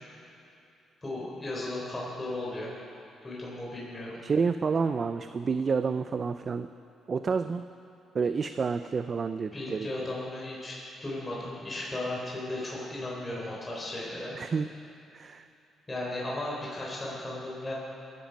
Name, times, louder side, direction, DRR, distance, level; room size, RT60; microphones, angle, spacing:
voice 1, 1.0-2.7 3.2-4.2 9.5-10.8 11.0-14.3 15.9-17.7, left 1 dB, 20° left, -5 dB, 4.1 m, -35 dB
voice 2, 4.2-6.7 7.1-7.6 8.1-9.9 14.4-14.7 15.1-15.4, right 5 dB, 40° right, 10 dB, 0.4 m, -29 dB
22.0 x 10.5 x 5.2 m, 2.8 s
cardioid pair, 90°, 0 cm